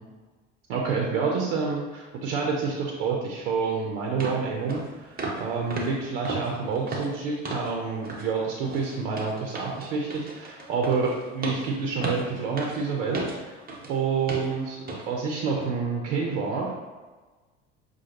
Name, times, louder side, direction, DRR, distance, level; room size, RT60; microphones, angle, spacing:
voice 1, 0.7-13.6 13.9-16.7, right 5 dB, 60° right, -1 dB, 0.8 m, -28 dB
sound 1, 3.6-3.7 4.2-4.4 4.7-4.9 5.2-5.4 5.7-7.7 8.0-8.3 8.6-13.9 14.3-14.5 14.9-15.1 15.5-15.6, right 2 dB, 25° right, 0.9 m, -35 dB
6.1 x 2.3 x 2.9 m, 1.3 s
hypercardioid pair, 75°, 37 cm